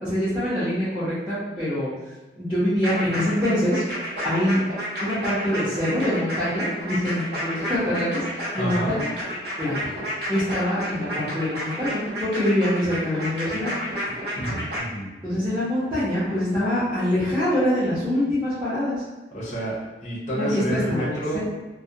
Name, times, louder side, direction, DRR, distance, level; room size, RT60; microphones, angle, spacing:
voice 1, 0.0-1.9 2.4-3.8 4.2-4.6 5.0-8.2 8.5-9.1 9.6-9.9 10.3-13.7 15.2-18.9 20.3-21.4, left 1 dB, 10° right, -15 dB, 0.7 m, -24 dB
sound 1, 2.8-14.8, equal, 70° right, 0.8 m, -31 dB
voice 2, 8.6-9.0 14.0-15.1 19.3-21.4, right 1 dB, 40° left, -6 dB, 0.6 m, -30 dB
2.3 x 2.1 x 2.7 m, 1.2 s
head